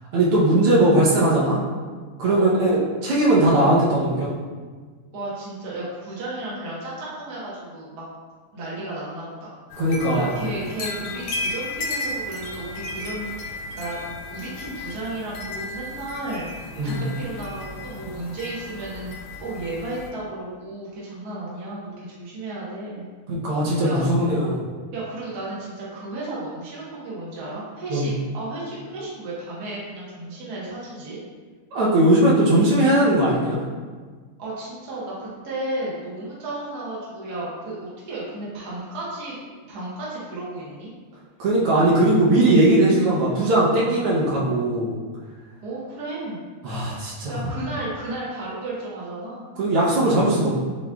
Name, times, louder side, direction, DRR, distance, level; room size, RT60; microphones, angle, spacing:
voice 1, 0.1-1.6 2.2-4.3 9.8-10.4 16.8-17.0 23.3-24.6 27.9-28.1 31.7-33.6 41.4-45.0 46.6-47.3 49.6-50.5, right 1 dB, 80° right, -6 dB, 1.8 m, -19 dB
voice 2, 2.2-2.6 5.1-8.0 8.5-9.5 10.1-23.1 23.8-24.0 24.9-31.2 34.4-39.4 39.7-40.9 45.6-46.4 47.3-49.4, right 2 dB, 50° right, -7 dB, 1.6 m, -33 dB
sound 1, 9.7-20.1, left 2 dB, 90° left, 1.6 m, -34 dB
7.2 x 3.1 x 2.3 m, 1.5 s
omnidirectional pair, 2.4 m